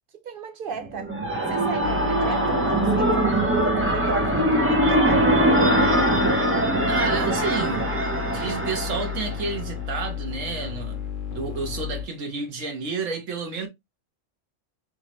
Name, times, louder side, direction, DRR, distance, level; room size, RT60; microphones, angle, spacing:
voice 1, 0.2-1.1 1.5-5.2, right 5 dB, 50° right, 0.9 m, -35 dB
sound 1, 0.8-9.6, right 1 dB, 15° right, 0.4 m, -22 dB
sound 2, 1.8-12.1, left 7 dB, 50° left, 0.8 m, -33 dB
voice 2, 6.9-7.9 8.3-11.0 11.3-13.7, right 4 dB, 85° right, 1.4 m, -30 dB
3.5 x 3.1 x 2.9 m
omnidirectional pair, 1.3 m